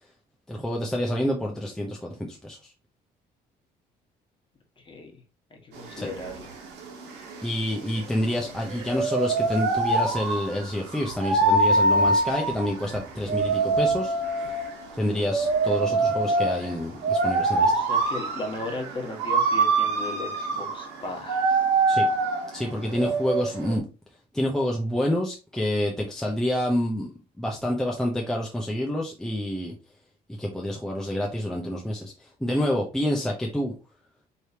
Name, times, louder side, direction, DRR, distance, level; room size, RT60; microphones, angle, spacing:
voice 1, 0.5-2.6 6.0-6.1 7.4-14.6 15.0-17.7 21.9-22.1 22.5-23.9 24.3-27.1 27.4-29.7 30.4-33.7, left 1 dB, 5° left, -1 dB, 0.7 m, -28 dB
voice 2, 4.8-5.2 5.5-6.5 16.2-16.4 17.7-21.7, left 2 dB, 30° left, 2 dB, 1.4 m, -37 dB
sound 1, 5.7-23.8, right 3 dB, 85° right, 1.1 m, -25 dB
4.6 x 3.3 x 2.8 m, 0.32 s
cardioid pair, 110°, 17 cm